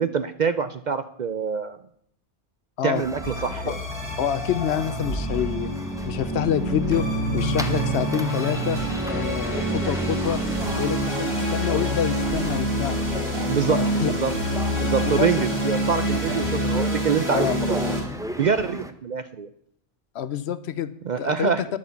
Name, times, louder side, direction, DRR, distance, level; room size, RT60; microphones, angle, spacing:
voice 1, 0.0-1.8 2.8-3.8 13.5-14.3 14.8-17.8 18.4-19.5 21.0-21.6, right 6 dB, 55° right, 11 dB, 0.5 m, -25 dB
sound 1, 2.9-18.9, right 1 dB, 5° right, 0.5 m, -35 dB
sound 2, 3.2-18.0, equal, 40° right, 3.8 m, -26 dB
voice 2, 4.2-5.7 6.1-7.1 7.3-8.8 9.0-10.4 10.8-13.0 13.7-14.1 15.1-15.4 17.3-17.5 20.1-20.9 21.2-21.7, left 9 dB, 70° left, 14 dB, 0.9 m, -27 dB
10.0 x 8.4 x 6.9 m, 0.71 s
omnidirectional pair, 1.2 m